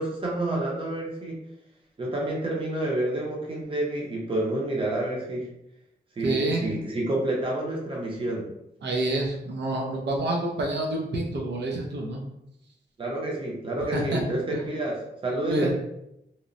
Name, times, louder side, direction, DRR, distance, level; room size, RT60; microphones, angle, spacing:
voice 1, 0.0-1.4 2.0-5.5 6.2-8.5 13.0-15.7, right 1 dB, 30° right, -2 dB, 0.6 m, -29 dB
voice 2, 6.2-6.7 8.8-12.2 13.9-14.2 14.5-14.6 15.5-15.7, right 2 dB, 80° right, 0 dB, 0.5 m, -27 dB
2.9 x 2.0 x 2.5 m, 0.82 s
wide cardioid pair, 175°, 18 cm